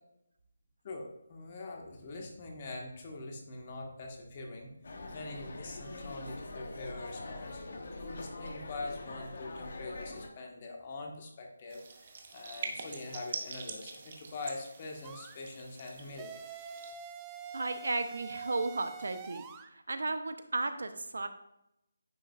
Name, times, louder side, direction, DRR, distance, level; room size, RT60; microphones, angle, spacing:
voice 1, 0.8-4.7 5.0-7.7 8.0-16.4, left 2 dB, 35° left, 1 dB, 1.3 m, -43 dB
sound 1, 4.8-10.3, left 2 dB, 60° left, 1.0 m, -44 dB
sound 2, 11.7-16.9, right 4 dB, 40° right, 1.0 m, -44 dB
sound 3, 15.0-15.4 16.2-19.7, right 5 dB, 15° right, 0.4 m, -45 dB
voice 2, 17.5-19.4 19.9-21.3, right 3 dB, 75° right, 9 dB, 0.6 m, -34 dB
9.6 x 5.1 x 2.4 m, 0.83 s
figure-of-eight pair, 160°, 0 cm